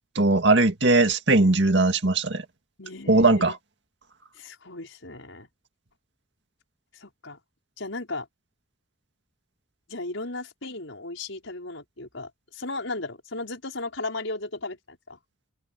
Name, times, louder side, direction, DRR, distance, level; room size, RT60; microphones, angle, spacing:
voice 1, 0.2-2.4 3.1-3.5, right 2 dB, 65° right, 2.2 m, -19 dB
voice 2, 2.8-3.5 4.4-5.5 6.9-7.4 7.8-8.3 9.9-15.2, left 2 dB, 85° left, 5.3 m, -36 dB
head